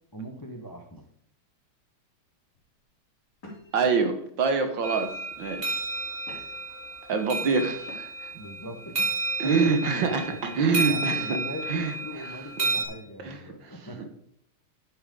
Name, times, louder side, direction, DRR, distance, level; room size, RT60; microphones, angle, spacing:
voice 1, 0.1-1.0 8.3-9.1 9.4-14.1, left 1 dB, 20° left, 4 dB, 0.6 m, -40 dB
sound 1, 2.5-2.8 3.4-3.8 4.5-4.6 4.9-5.4 5.9-6.7 7.8-8.3, left 1 dB, 50° left, 4.3 m, -47 dB
voice 2, 3.7-5.1 5.4-5.8 7.1-8.3 9.4-11.4 11.7-11.9 13.2-13.4 13.6-13.7, right 4 dB, 65° right, 6 dB, 1.8 m, -25 dB
sound 2, 4.8-12.8, right 2 dB, 25° right, 2.4 m, -32 dB
10.5 x 9.1 x 3.8 m, 0.69 s
omnidirectional pair, 2.3 m